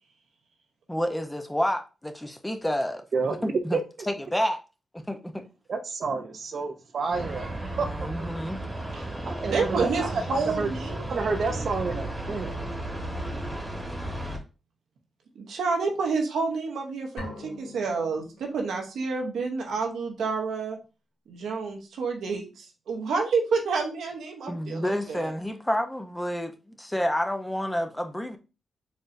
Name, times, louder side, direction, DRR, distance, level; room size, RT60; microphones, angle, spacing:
voice 1, 0.9-3.0 3.4-3.8 4.1-4.6 4.9-5.4 7.8-8.6 24.5-26.5 26.8-28.4, equal, 10° left, 0.7 m, -29 dB
voice 2, 3.1-3.4 3.7-3.8 5.7-7.9 8.2-8.3 9.3-10.7 11.1-12.6, right 4 dB, 65° right, 0.5 m, -29 dB
sound 1, 7.1-14.4, right 1 dB, 10° right, 1.3 m, -34 dB
voice 3, 9.5-11.7 15.3-20.8 21.3-25.3, right 4 dB, 80° right, 0.9 m, -29 dB
sound 2, 17.2-19.0, left 2 dB, 90° left, 1.3 m, -43 dB
4.2 x 3.1 x 2.6 m
supercardioid pair, 50°, 0 cm